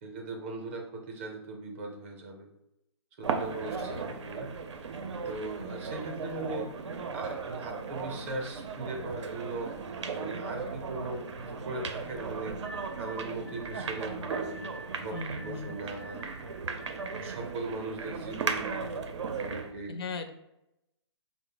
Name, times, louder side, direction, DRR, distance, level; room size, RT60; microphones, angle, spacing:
voice 1, 0.0-2.5 3.2-4.5 5.2-6.7 7.1-9.7 10.1-12.6 13.0-14.6 15.0-16.3 17.2-18.8 19.4-20.0, right 2 dB, 25° right, 2 dB, 0.5 m, -39 dB
sound 1, 3.2-19.7, right 5 dB, 80° right, 0.5 m, -37 dB
voice 2, 3.5-4.1 15.1-15.7 19.9-20.3, left 3 dB, 60° left, 7 dB, 0.5 m, -39 dB
sound 2, 12.6-17.5, right 1 dB, 90° left, 0.9 m, -48 dB
4.1 x 2.0 x 3.7 m, 0.87 s
hypercardioid pair, 160°, 15 cm